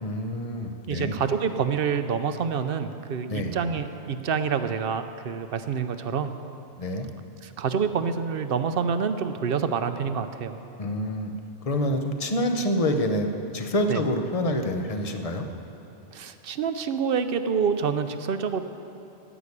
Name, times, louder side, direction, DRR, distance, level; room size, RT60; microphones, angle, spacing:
voice 1, 0.0-1.1 3.3-3.6 6.8-7.1 10.8-11.3 11.6-15.5, left 1 dB, 35° left, 6 dB, 0.8 m, -27 dB
voice 2, 0.9-6.3 7.4-10.6 13.9-14.0 16.1-18.7, right 6 dB, 60° right, 9 dB, 0.8 m, -27 dB
11.0 x 8.3 x 9.8 m, 2.9 s
omnidirectional pair, 1.2 m